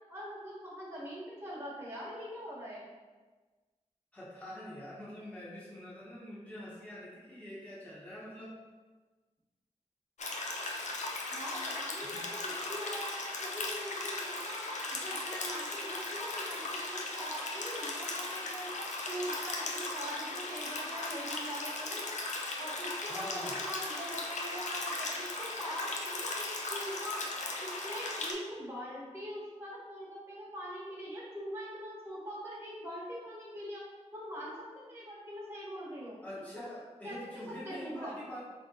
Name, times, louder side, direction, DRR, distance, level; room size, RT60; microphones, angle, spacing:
voice 1, 0.1-2.9 11.3-12.3 12.7-13.1 13.4-14.7 14.9-18.7 19.1-22.0 22.6-27.2 27.6-33.8 34.1-36.2 36.5-36.7 37.0-37.2 37.6-38.2, equal, 20° right, -7 dB, 1.3 m, -42 dB
voice 2, 4.1-8.6 12.0-12.3 23.1-23.6 36.2-38.4, left 1 dB, 10° left, -8 dB, 1.2 m, -45 dB
sound 1, 10.2-28.3, left 2 dB, 80° left, 0.5 m, -37 dB
3.6 x 2.9 x 3.8 m, 1.3 s
wide cardioid pair, 65°, 12 cm